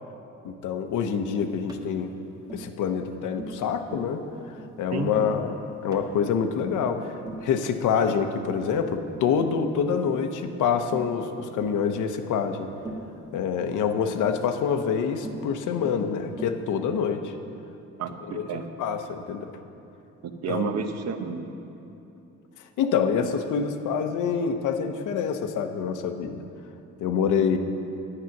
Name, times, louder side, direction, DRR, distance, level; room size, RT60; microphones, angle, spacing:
voice 1, 0.4-2.1 2.5-4.2 4.8-5.5 5.8-12.7 13.3-17.3 18.2-19.5 20.5-20.7 22.8-26.4 27.0-27.6, left 6 dB, 80° left, 7 dB, 0.8 m, -26 dB
Tap, 1.7-1.9 2.5-2.7 3.4-3.6 3.9-4.1 4.6-4.8 5.2-5.4 5.9-6.1 6.6-6.8 7.3-7.5 8.1-8.3 8.7-9.0 9.4-9.6 10.1-10.2 10.9-11.2 11.6-11.8 12.8-13.1 14.2-14.4 15.2-15.5 15.8-16.1 16.4-16.6, right 2 dB, 15° right, 1.4 m, -39 dB
voice 2, 18.0-18.7 20.2-21.5, right 6 dB, 60° right, 7 dB, 0.9 m, -31 dB
9.8 x 8.9 x 5.9 m, 2.8 s
cardioid pair, 90°, 30 cm